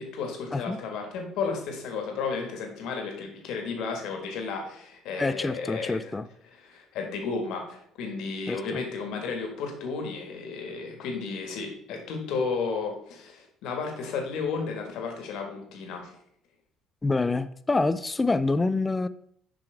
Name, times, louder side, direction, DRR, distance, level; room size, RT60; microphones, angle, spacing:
voice 1, 0.0-6.1 6.4-16.1, left 4 dB, 70° left, 3 dB, 1.7 m, -33 dB
voice 2, 5.2-6.3 8.5-8.8 17.0-19.1, left 3 dB, 20° left, 14 dB, 0.5 m, -26 dB
6.7 x 5.2 x 3.5 m, 0.64 s
supercardioid pair, 70°, 0 cm